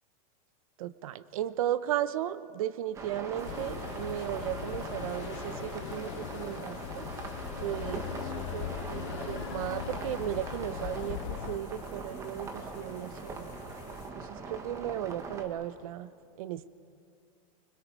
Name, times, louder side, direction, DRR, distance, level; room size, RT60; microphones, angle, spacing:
voice 1, 0.8-7.1 7.6-13.5 14.1-16.1 16.4-16.7, right 12 dB, 70° right, 15 dB, 0.7 m, -35 dB
sound 1, 2.9-15.5, right 4 dB, 15° right, 1.2 m, -41 dB
sound 2, 3.4-11.6, left 13 dB, 55° left, 0.6 m, -40 dB
sound 3, 3.4-14.1, left 8 dB, 40° left, 1.5 m, -52 dB
27.0 x 21.0 x 4.6 m, 2.4 s
supercardioid pair, 170°, 18 cm